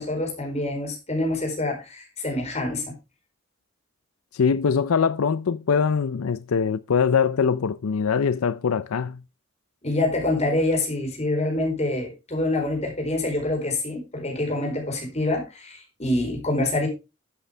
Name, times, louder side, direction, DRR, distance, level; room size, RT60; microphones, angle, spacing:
voice 1, 0.0-3.0 9.8-16.9, left 2 dB, 30° left, 4.2 m, -26 dB
voice 2, 4.3-9.2, left 6 dB, 80° left, 0.5 m, -22 dB
11.5 x 8.2 x 3.4 m
head